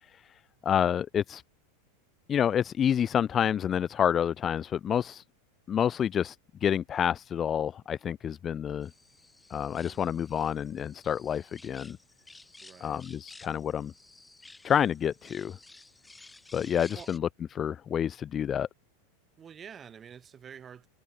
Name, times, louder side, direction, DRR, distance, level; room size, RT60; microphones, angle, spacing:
voice 1, 0.0-1.4 2.3-5.2 5.7-6.4 6.6-8.9 9.5-12.0 12.8-13.9 14.6-15.6 16.5-18.7, left 9 dB, 25° left, 0.5 m, -28 dB
sound 1, 8.8-17.2, left 2 dB, 10° left, 1.6 m, -54 dB
voice 2, 12.6-13.0 16.9-17.1 19.4-20.9, right 7 dB, 25° right, 5.3 m, -48 dB
open air
figure-of-eight pair, 85°, 0 cm